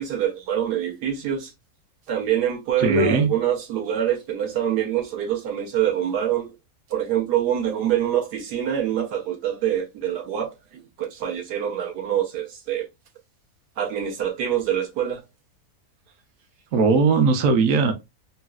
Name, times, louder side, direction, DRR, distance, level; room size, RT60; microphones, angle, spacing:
voice 1, 0.0-1.5 2.1-6.5 6.9-12.9 13.8-15.2, right 10 dB, 90° right, 1.4 m, -25 dB
voice 2, 2.8-3.3 16.7-17.9, right 4 dB, 65° right, 1.0 m, -18 dB
4.1 x 2.0 x 2.3 m
omnidirectional pair, 1.7 m